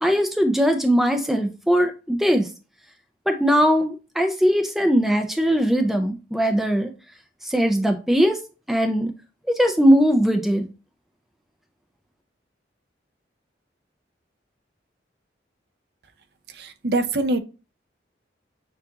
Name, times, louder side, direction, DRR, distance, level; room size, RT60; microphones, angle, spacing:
voice 1, 0.0-2.5 3.3-6.9 7.4-8.4 8.7-9.1 9.5-10.7, equal, ahead, 5 dB, 0.5 m, -20 dB
voice 2, 16.6-17.4, right 2 dB, 60° right, 8 dB, 0.7 m, -23 dB
6.7 x 2.5 x 2.8 m, 0.31 s
head